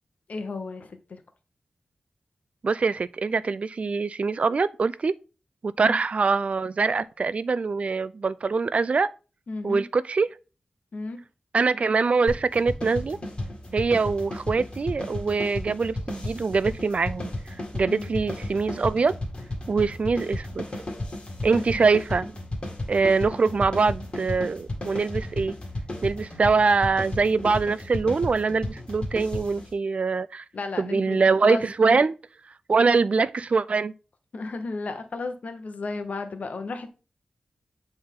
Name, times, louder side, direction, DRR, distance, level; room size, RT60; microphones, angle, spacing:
voice 1, 0.3-1.2 5.8-6.0 9.5-9.9 10.9-11.2 17.9-18.1 21.4-21.8 30.5-32.0 32.8-32.9 34.3-36.9, left 3 dB, 65° left, 0.9 m, -34 dB
voice 2, 2.6-5.1 5.6-9.1 9.6-10.3 11.5-13.2 13.7-19.2 19.7-20.7 21.4-22.3 22.9-25.5 26.0-30.5 30.8-32.1 32.7-33.9, right 4 dB, 55° right, 0.3 m, -23 dB
sound 1, 12.3-29.7, left 1 dB, 40° left, 2.1 m, -34 dB
7.9 x 3.5 x 3.6 m
wide cardioid pair, 90°, 3 cm